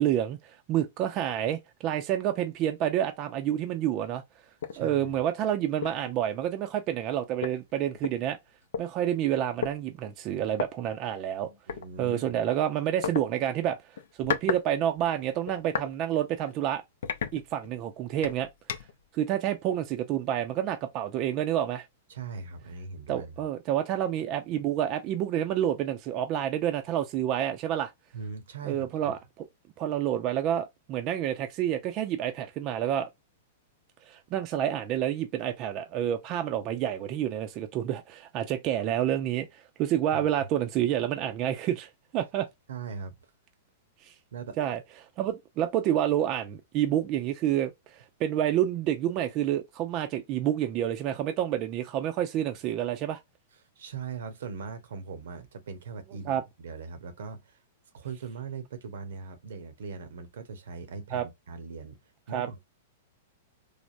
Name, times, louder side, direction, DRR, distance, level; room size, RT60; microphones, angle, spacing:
voice 1, 0.0-4.2 4.8-8.4 8.8-11.5 12.0-13.8 14.2-16.8 17.3-18.5 19.1-21.9 23.1-27.9 28.6-29.2 29.8-33.1 34.1-42.5 44.0-44.1 44.6-44.8 45.2-53.2 56.3-56.4 61.1-61.3 62.3-62.5, right 11 dB, 40° right, 0.4 m, -28 dB
sound 1, 4.6-4.8 5.3-5.4 5.8-6.1 7.1-7.2 7.4-8.8 9.6-9.8 10.5-10.7 11.7-11.9 13.0-13.2 14.0-14.6 15.0-15.9 16.4-16.5 17.0-17.8 18.2-19.0, left 7 dB, 75° left, 0.5 m, -33 dB
voice 2, 4.7-5.2 11.5-12.3 22.1-23.3 28.1-29.1 40.1-40.3 42.7-43.3 44.3-44.6 53.8-57.6 57.9-62.0 62.3-62.6, right 5 dB, 75° right, 0.7 m, -40 dB
3.3 x 2.1 x 2.5 m
hypercardioid pair, 130°, 0 cm